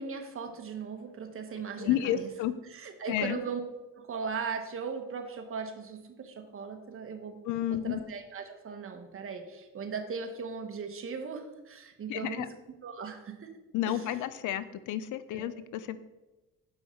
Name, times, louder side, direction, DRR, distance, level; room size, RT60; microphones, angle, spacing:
voice 1, 0.0-2.3 2.7-3.6 3.9-7.4 7.7-12.5 12.8-13.6 13.9-14.0 15.3-15.5, right 5 dB, 45° right, 5 dB, 1.2 m, -38 dB
voice 2, 1.8-2.5 3.1-3.4 7.4-8.0 12.1-12.5 13.7-16.0, left 11 dB, 85° left, 14 dB, 0.5 m, -31 dB
7.0 x 5.5 x 4.4 m, 1.1 s
cardioid pair, 90°, 30 cm